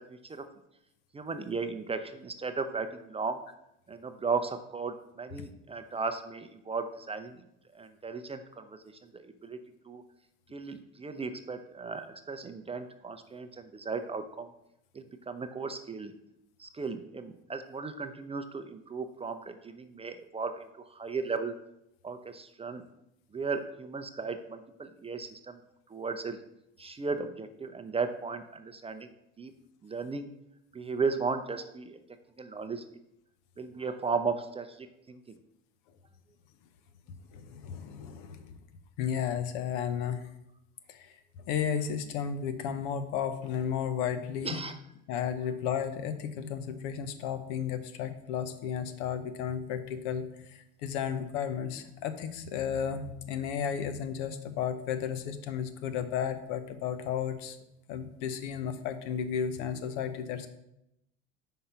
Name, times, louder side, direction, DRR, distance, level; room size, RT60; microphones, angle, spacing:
voice 1, 1.1-3.4 3.9-7.4 7.7-8.8 9.1-9.6 9.9-10.0 10.5-14.5 14.9-16.1 16.6-20.6 20.9-21.5 22.0-22.8 23.3-25.6 25.9-26.4 26.8-29.1 29.4-29.5 29.8-30.3 30.7-32.0 32.4-32.8 33.6-35.3 44.4-44.7, right 4 dB, 15° right, 8 dB, 0.5 m, -35 dB
voice 2, 37.3-38.6 39.0-40.3 40.9-41.2 41.5-44.6 45.1-57.6 57.9-60.5, left 8 dB, 70° left, 10 dB, 0.8 m, -33 dB
5.5 x 3.8 x 5.6 m, 0.83 s
hypercardioid pair, 80°, 36 cm